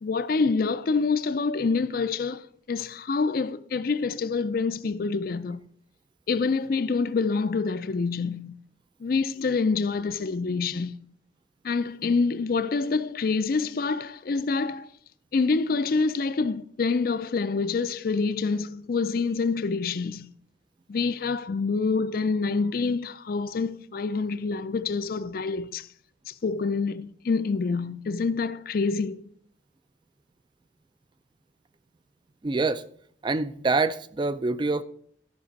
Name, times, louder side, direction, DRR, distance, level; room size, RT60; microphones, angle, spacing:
voice 1, 0.0-5.6 6.3-8.5 9.0-10.9 11.6-14.9 15.3-20.3 20.9-25.9 26.3-29.2, left 4 dB, 50° left, 0.4 m, -26 dB
voice 2, 32.4-32.8 33.2-34.8, right 3 dB, 25° right, 0.3 m, -25 dB
12.5 x 6.0 x 5.2 m
head